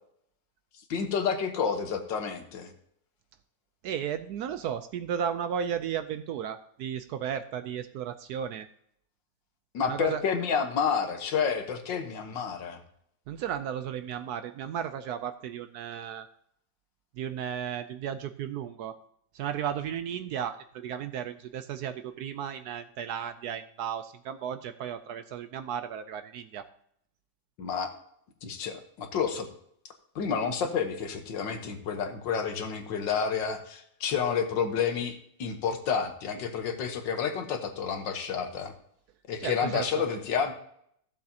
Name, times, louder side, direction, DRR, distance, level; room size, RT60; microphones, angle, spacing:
voice 1, 0.9-2.7 9.7-12.8 27.6-27.9 28.4-29.5 30.2-38.7 39.3-40.5, left 6 dB, 80° left, 6 dB, 1.8 m, -30 dB
voice 2, 3.8-8.7 9.8-10.2 13.3-16.3 17.2-19.0 19.3-26.7 39.4-39.9, right 8 dB, 70° right, 11 dB, 1.0 m, -34 dB
14.5 x 7.4 x 2.8 m, 0.70 s
omnidirectional pair, 2.0 m